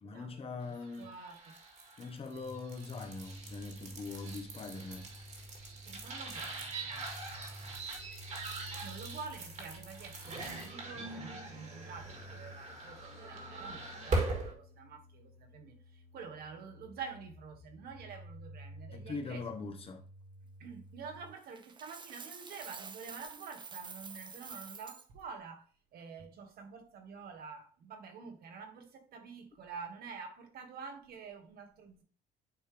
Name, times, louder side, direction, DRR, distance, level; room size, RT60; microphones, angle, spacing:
voice 1, 0.0-1.1 2.0-5.1 18.9-20.0, left 4 dB, 35° left, 1.2 m, -42 dB
voice 2, 0.6-1.6 5.8-7.8 8.8-19.6 20.6-25.6 25.9-32.0, right 5 dB, 65° right, 1.5 m, -48 dB
sound 1, 0.9-14.5, right 2 dB, 45° right, 2.1 m, -41 dB
sound 2, 2.1-21.3, equal, 50° left, 1.4 m, -52 dB
Coin (dropping), 21.5-25.0, right 5 dB, 25° right, 0.7 m, -48 dB
9.3 x 3.2 x 3.4 m
cardioid pair, 110°, 17 cm